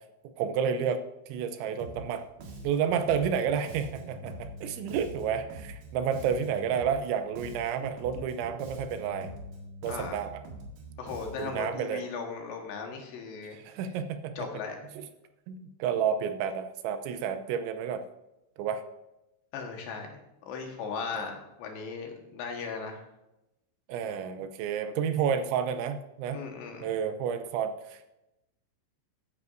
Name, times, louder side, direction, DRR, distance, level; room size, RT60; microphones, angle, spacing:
voice 1, 0.4-1.0 1.3-2.2 2.6-9.3 9.8-10.4 11.4-12.0 13.5-14.4 15.0-15.1 15.5-18.0 18.6-18.8 21.1-21.3 23.9-26.4 26.8-28.1, right 7 dB, 80° right, 9 dB, 3.0 m, -30 dB
Bass guitar, 1.8-2.1 2.4-7.1 7.3-11.7, right 1 dB, 60° right, 3.3 m, -44 dB
voice 2, 9.9-10.2 11.0-13.6 14.4-14.8 19.5-20.2 20.5-23.0 26.3-26.9, left 5 dB, 70° left, 2 dB, 3.4 m, -37 dB
15.0 x 9.3 x 2.6 m, 0.91 s
omnidirectional pair, 5.4 m